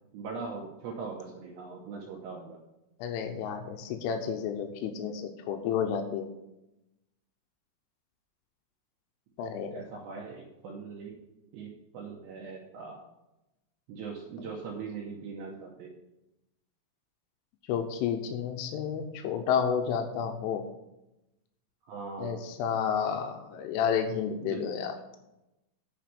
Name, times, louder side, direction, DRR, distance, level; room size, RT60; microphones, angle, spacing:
voice 1, 0.1-2.6 9.7-11.1 11.5-13.1 13.9-15.9 21.9-22.4 24.4-24.7, right 5 dB, 70° right, -1 dB, 3.0 m, -40 dB
voice 2, 3.0-6.3 9.4-9.8 17.7-20.6 22.2-25.0, left 7 dB, 85° left, 6 dB, 3.2 m, -31 dB
9.2 x 5.8 x 6.9 m, 0.93 s
omnidirectional pair, 5.6 m